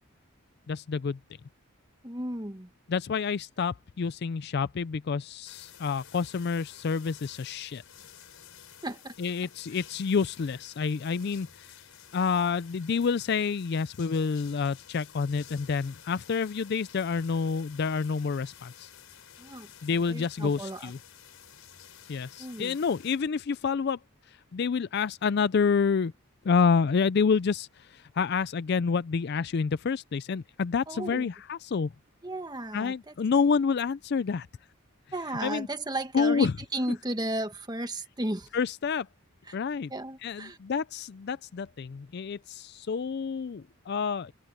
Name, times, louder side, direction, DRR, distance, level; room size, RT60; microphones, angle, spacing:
voice 1, 0.7-1.2 2.9-7.8 9.2-11.8 12.1-18.9 19.8-21.0 22.1-24.0 24.5-26.1 26.4-31.9 32.7-34.5 35.4-35.7 36.1-36.5 38.5-39.1 39.5-39.9 40.2-44.3, left 5 dB, 50° left, 0.4 m, -28 dB
voice 2, 2.0-2.7 8.8-9.1 19.4-20.9 22.4-22.8 30.9-31.3 32.2-33.1 35.1-38.5 39.4-39.6 39.9-40.6, right 1 dB, 20° right, 1.5 m, -35 dB
sound 1, 5.5-23.2, left 9 dB, 75° left, 4.5 m, -52 dB
head